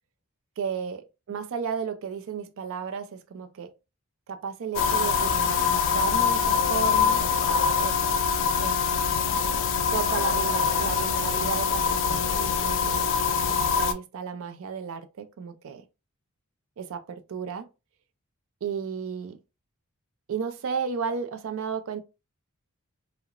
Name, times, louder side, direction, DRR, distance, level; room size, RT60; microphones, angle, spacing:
voice 1, 0.6-3.7 4.3-7.2 7.8-8.0 8.6-8.8 9.9-13.1 13.6-15.8 16.8-17.7 18.6-19.4 20.3-22.0, right 6 dB, 65° right, 0.4 m, -33 dB
sound 1, 4.7-13.9, left 6 dB, 60° left, 0.3 m, -24 dB
2.8 x 2.0 x 2.4 m
head